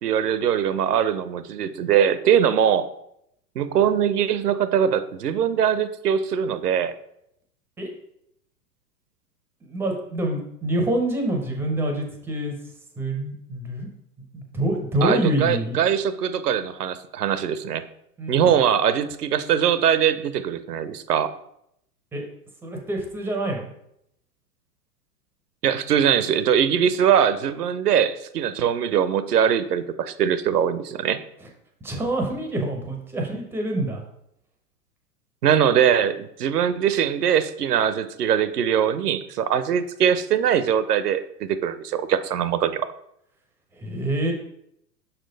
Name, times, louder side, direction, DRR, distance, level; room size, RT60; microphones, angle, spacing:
voice 1, 0.0-2.9 3.6-6.9 15.0-17.8 18.3-21.3 25.6-31.2 35.4-42.9, right 8 dB, 70° right, 13 dB, 0.7 m, -22 dB
voice 2, 9.6-12.6 13.0-13.9 14.3-15.8 18.2-18.5 22.1-22.2 22.6-23.7 31.4-31.5 31.8-34.0 43.7-44.3, right 1 dB, 5° right, 2 dB, 0.4 m, -26 dB
6.0 x 4.3 x 3.9 m, 0.76 s
figure-of-eight pair, 95°, 48 cm